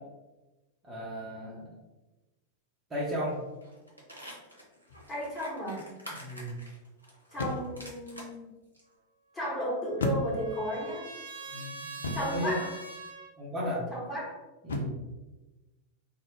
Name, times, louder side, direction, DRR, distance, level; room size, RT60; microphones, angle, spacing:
voice 1, 0.8-1.8 2.9-3.4 6.1-6.6 11.5-11.9 12.2-12.6 13.4-13.9 14.6-15.0, equal, 20° right, -7 dB, 0.9 m, -35 dB
sound 1, 3.1-3.3 3.6-8.3 8.7-8.8, equal, 90° right, 0.7 m, -48 dB
sound 2, 4.9-5.3 7.3-7.9 10.0-10.7 12.0-12.5 14.7-15.1, left 2 dB, 70° left, 0.4 m, -34 dB
voice 2, 5.1-5.9 7.3-8.5 9.3-11.1 12.1-12.8 13.9-14.4, equal, 15° left, -6 dB, 1.3 m, -34 dB
Trumpet, 9.5-13.3, right 3 dB, 70° right, 0.4 m, -44 dB
2.4 x 2.3 x 3.6 m, 1.1 s
figure-of-eight pair, 90°, 0 cm